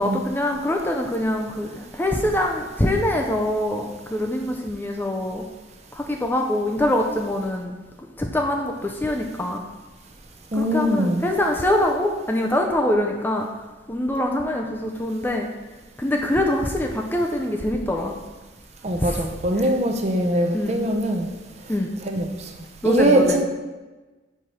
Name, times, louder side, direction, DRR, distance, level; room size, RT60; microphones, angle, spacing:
voice 1, 0.0-5.4 5.9-7.7 8.2-9.6 10.5-13.5 13.9-15.5 16.0-18.1 19.0-19.2 19.6-19.7 20.5-20.8 21.7-21.9 22.8-23.4, left 1 dB, 10° left, 1 dB, 0.4 m, -24 dB
voice 2, 10.5-11.2 18.8-21.3 22.1-22.3 22.8-23.4, right 1 dB, 35° right, 3 dB, 0.6 m, -21 dB
4.7 x 4.3 x 5.3 m, 1.2 s
head